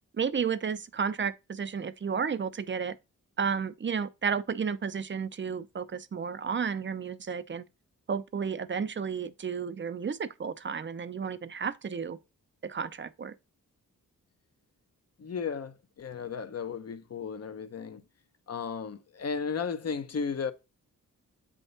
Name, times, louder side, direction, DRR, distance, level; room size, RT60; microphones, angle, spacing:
voice 1, 0.1-3.0 3.4-7.6 8.1-12.2 12.6-13.3, right 6 dB, 35° right, 0.5 m, -32 dB
voice 2, 15.2-18.0 18.5-20.5, left 5 dB, 50° left, 0.8 m, -34 dB
7.8 x 3.7 x 3.9 m
cardioid pair, 65°, 33 cm